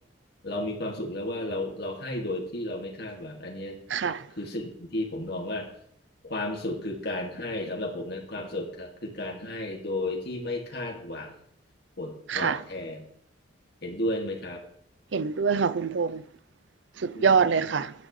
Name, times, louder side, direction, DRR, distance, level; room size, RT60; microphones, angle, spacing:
voice 1, 0.4-3.8 4.4-5.7 6.2-11.3 12.0-13.1 13.8-14.7 17.1-17.5, left 1 dB, 55° left, 2.2 m, -33 dB
voice 2, 3.9-4.2 12.3-12.6 15.1-16.2 17.0-17.9, right 5 dB, 65° right, 0.5 m, -24 dB
15.5 x 11.0 x 3.2 m
head